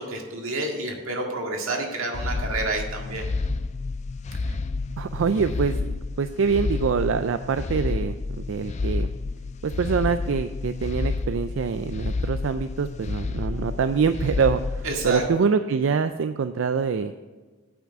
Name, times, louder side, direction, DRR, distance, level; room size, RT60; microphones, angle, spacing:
voice 1, 0.0-3.3 14.8-15.2, right 2 dB, 90° right, 1 dB, 1.9 m, -29 dB
sound 1, 2.1-15.3, left 3 dB, 35° left, 0.3 m, -30 dB
voice 2, 5.0-8.2 8.5-9.1 9.6-17.1, right 5 dB, 70° right, 10 dB, 0.4 m, -25 dB
8.6 x 6.0 x 7.4 m, 1.3 s
head